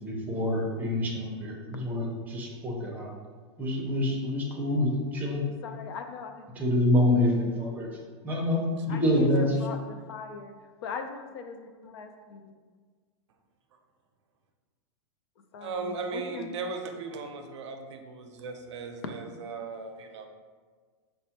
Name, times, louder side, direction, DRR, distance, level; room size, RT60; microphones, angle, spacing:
voice 1, 0.0-3.1 3.6-5.4 6.5-7.9 8.2-8.6 8.9-9.6, left 1 dB, 10° right, -2 dB, 0.6 m, -26 dB
voice 2, 5.6-6.4 8.9-10.5 10.8-12.4 15.5-16.5, left 6 dB, 60° left, 6 dB, 0.4 m, -40 dB
voice 3, 15.6-20.3, right 4 dB, 85° right, 4 dB, 0.6 m, -37 dB
5.3 x 2.1 x 2.8 m, 1.5 s
supercardioid pair, 155°, 15 cm